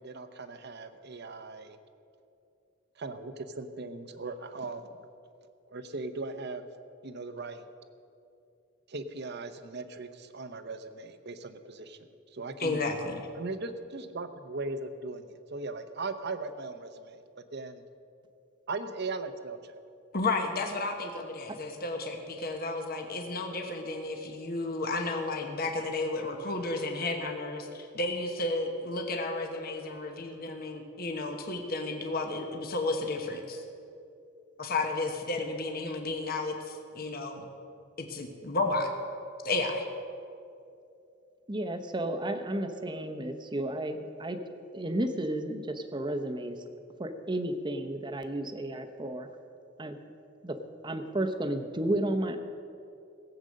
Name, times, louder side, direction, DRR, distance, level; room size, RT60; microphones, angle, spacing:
voice 1, 0.0-1.8 3.0-4.9 5.7-6.6 7.0-7.6 8.9-12.8 13.4-17.2 17.5-17.8 18.7-19.8, right 3 dB, 55° right, 10 dB, 0.8 m, -38 dB
voice 2, 12.6-13.3 20.1-33.6 34.6-37.5 38.0-38.9 39.4-39.9, left 2 dB, 50° left, 4 dB, 1.2 m, -32 dB
voice 3, 41.5-44.4 44.7-46.6 47.0-49.3 49.8-50.0 50.4-50.6 50.8-52.4, right 1 dB, 25° right, 7 dB, 0.8 m, -32 dB
17.5 x 8.0 x 6.4 m, 2.6 s
head